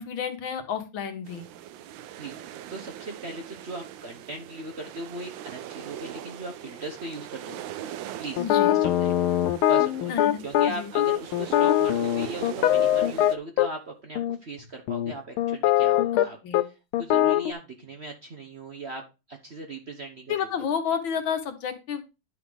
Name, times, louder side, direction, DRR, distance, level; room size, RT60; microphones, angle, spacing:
voice 1, 0.0-1.5 8.4-8.7 10.1-10.4 10.7-10.9 16.4-16.6 20.3-22.1, left 7 dB, 70° left, 8 dB, 1.8 m, -30 dB
sound 1, 1.3-13.4, right 11 dB, 75° right, 1.3 m, -41 dB
voice 2, 2.2-7.6 8.2-8.5 8.7-10.1 10.4-19.0 19.3-20.4, right 2 dB, 40° right, 2 dB, 1.0 m, -39 dB
sound 2, 8.4-13.7 14.2-14.4 14.9-16.3 16.5-16.6 16.9-17.5, left 12 dB, 85° left, 1.5 m, -22 dB
10.5 x 4.1 x 5.0 m, 0.27 s
omnidirectional pair, 2.3 m